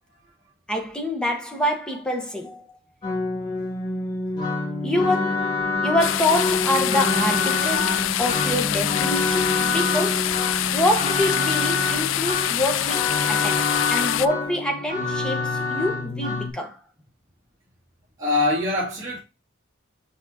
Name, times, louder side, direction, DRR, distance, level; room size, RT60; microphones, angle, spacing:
voice 1, 0.7-2.8 4.8-10.4 10.7-16.8, left 1 dB, 5° left, 1.1 m, -26 dB
sound 1, 3.0-16.5, left 2 dB, 25° left, 2.8 m, -26 dB
sound 2, 6.0-14.3, left 12 dB, 70° left, 0.4 m, -25 dB
voice 2, 18.2-19.2, left 2 dB, 20° right, 2.4 m, -23 dB
6.0 x 5.9 x 2.8 m
head